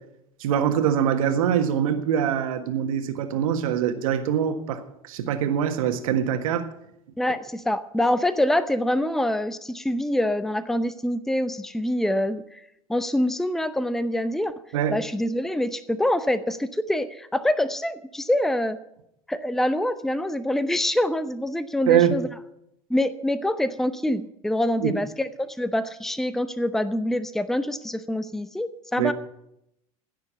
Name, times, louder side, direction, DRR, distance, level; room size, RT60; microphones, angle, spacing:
voice 1, 0.4-6.7 14.7-15.0 21.9-22.2 24.8-25.0 29.0-29.1, right 9 dB, 70° right, 8 dB, 1.6 m, -23 dB
voice 2, 7.2-12.6 12.9-14.5 14.9-18.8 19.3-22.3 22.9-29.1, left 1 dB, ahead, 13 dB, 0.7 m, -25 dB
15.5 x 6.7 x 8.3 m, 0.81 s
hypercardioid pair, 75°, 18 cm